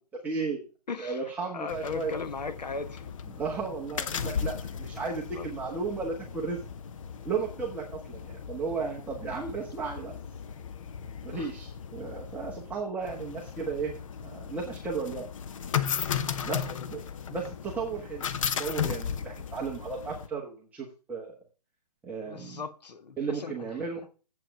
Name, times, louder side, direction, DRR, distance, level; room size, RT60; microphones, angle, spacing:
voice 1, 0.2-0.6 1.0-2.1 3.4-6.6 7.2-10.1 11.2-14.0 14.2-15.2 16.4-16.6 16.9-17.0 17.3-18.2 18.6-21.3 22.0-22.6 23.2-24.0, right 5 dB, 5° right, 1.2 m, -34 dB
voice 2, 0.9-3.1 4.9-5.0 5.3-5.5 8.5-8.6 11.3-11.5 16.5-16.9 22.2-23.7, left 4 dB, 90° left, 1.3 m, -38 dB
sound 1, 1.7-20.3, left 7 dB, 50° left, 0.9 m, -36 dB
7.7 x 7.6 x 5.8 m
hypercardioid pair, 155°, 21 cm